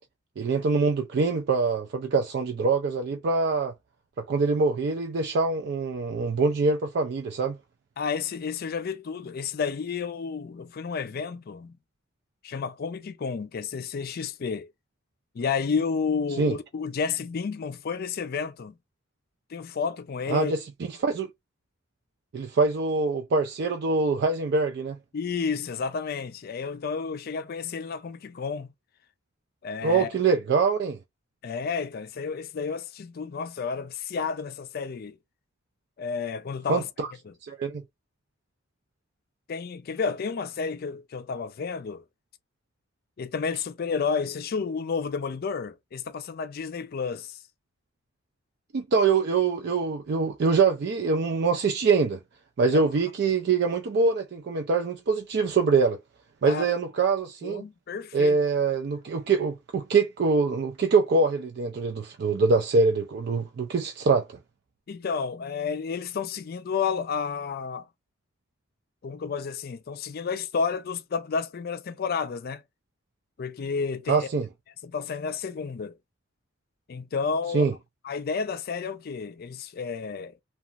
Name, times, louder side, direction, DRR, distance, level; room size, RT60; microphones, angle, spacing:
voice 1, 0.4-3.7 4.3-7.6 16.4-16.6 20.3-20.6 20.9-21.3 22.3-25.0 29.8-31.0 36.7-37.1 37.4-37.8 48.7-52.2 52.6-56.0 56.4-57.6 58.1-64.3 74.1-74.5 77.5-77.7, right 4 dB, 55° right, 0.4 m, -24 dB
voice 2, 8.0-11.8 12.4-14.7 15.3-18.8 19.5-20.5 25.1-28.7 29.6-30.1 31.4-35.2 36.0-36.9 37.3-37.4 39.5-42.0 43.2-47.4 56.4-56.7 57.4-58.4 64.9-67.9 69.0-72.6 73.4-74.3 74.8-76.0 76.9-77.7 78.0-80.4, left 5 dB, 50° left, 0.4 m, -31 dB
2.9 x 2.3 x 2.4 m
head